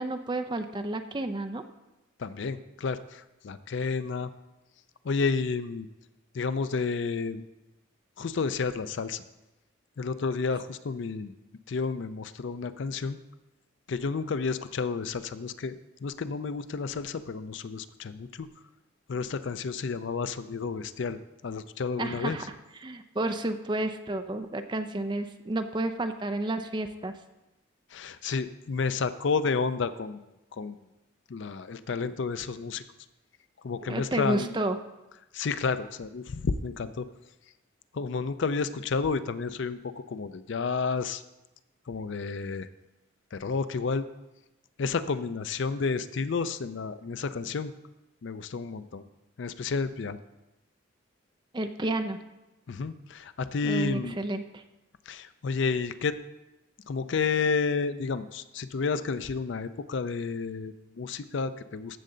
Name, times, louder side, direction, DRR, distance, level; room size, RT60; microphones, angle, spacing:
voice 1, 0.0-1.6 22.0-22.4 22.8-27.1 33.8-34.8 51.5-52.2 53.6-54.6, right 2 dB, 20° right, 8 dB, 0.5 m, -31 dB
voice 2, 2.2-4.3 5.0-5.9 6.3-7.5 8.2-9.2 10.0-11.3 11.7-13.2 13.9-15.7 16.0-18.5 19.1-22.4 27.9-30.8 31.3-32.8 33.6-34.6 35.3-37.1 37.9-41.2 41.9-42.7 43.3-44.1 44.8-47.7 48.2-49.0 49.4-50.2 52.7-54.2 55.1-56.1 56.9-62.0, left 4 dB, 65° left, 13 dB, 0.4 m, -31 dB
14.0 x 6.6 x 3.9 m, 0.99 s
head